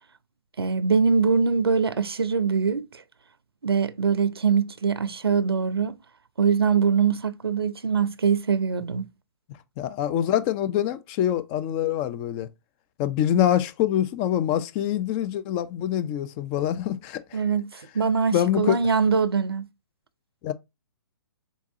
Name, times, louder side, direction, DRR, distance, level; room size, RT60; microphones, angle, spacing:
voice 1, 0.6-2.9 3.6-5.9 6.4-9.1 17.3-19.7, right 6 dB, 90° right, 0.5 m, -23 dB
voice 2, 9.8-12.5 13.0-17.4 18.3-18.8 20.4-20.5, left 11 dB, 25° left, 0.4 m, -25 dB
4.0 x 3.5 x 2.6 m
hypercardioid pair, 130°, 12 cm